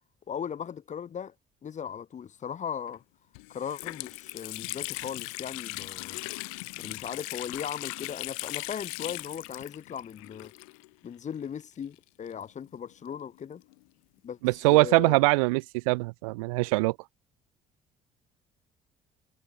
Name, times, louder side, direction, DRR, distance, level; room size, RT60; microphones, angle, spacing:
voice 1, 0.3-1.3 1.6-3.0 3.5-6.2 6.8-10.5 11.0-13.6 14.2-14.4 14.7-15.2, left 8 dB, 40° left, 2.6 m, -38 dB
Water tap faucet, 2.9-3.0 3.3-11.1 11.3-11.4 12.3-13.8, left 30 dB, 70° left, 0.9 m, -39 dB
voice 2, 14.4-16.9, right 25 dB, 70° right, 0.7 m, -23 dB
figure-of-eight pair, 50°, 18 cm